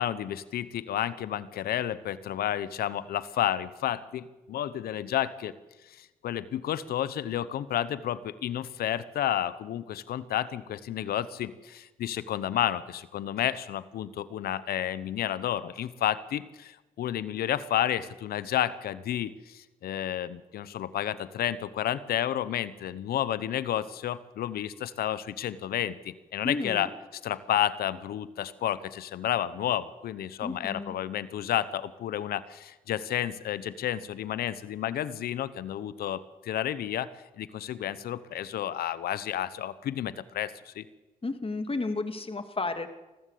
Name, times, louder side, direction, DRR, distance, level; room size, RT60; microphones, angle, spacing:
voice 1, 0.0-5.5 5.9-37.1 37.4-40.9, left 11 dB, 90° left, 17 dB, 0.9 m, -31 dB
voice 2, 26.4-26.9 30.4-30.9 41.2-42.9, left 3 dB, 35° left, 8 dB, 2.4 m, -32 dB
24.5 x 14.5 x 8.5 m, 1.1 s
supercardioid pair, 45°, 15 cm